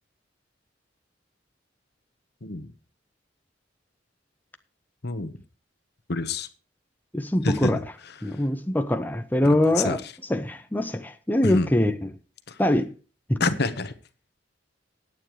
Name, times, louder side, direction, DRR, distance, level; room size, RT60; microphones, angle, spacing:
voice 1, 6.1-6.5 7.4-7.7 8.3-8.4 9.4-10.0 11.4-11.7 12.5-12.6 13.4-13.9, left 3 dB, 60° left, 1.3 m, -27 dB
voice 2, 7.1-7.8 8.2-10.0 10.3-12.1 12.6-12.9 13.3-13.4, left 1 dB, 10° left, 0.8 m, -23 dB
17.0 x 9.2 x 3.2 m
head